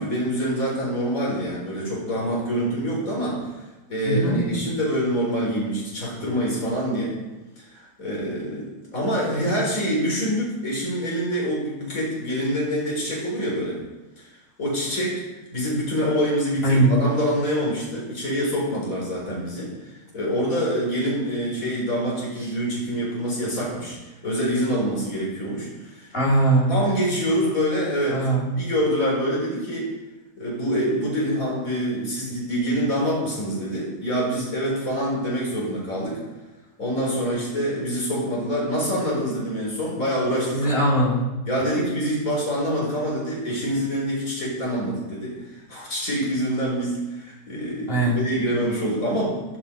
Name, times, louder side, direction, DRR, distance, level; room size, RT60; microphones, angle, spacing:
voice 1, 0.0-3.5 3.9-7.2 7.6-13.8 14.2-14.3 14.6-15.2 15.5-24.0 24.2-26.2 26.7-28.2 28.6-29.9 30.4-36.2 36.8-40.8 41.5-49.6, equal, 60° left, -4 dB, 4.8 m, -26 dB
voice 2, 4.1-4.6 16.6-17.0 26.1-26.8 28.1-28.5 40.5-41.3 47.9-48.2, right 2 dB, 35° left, -3 dB, 3.8 m, -20 dB
15.5 x 12.5 x 5.1 m, 1.1 s
omnidirectional pair, 1.7 m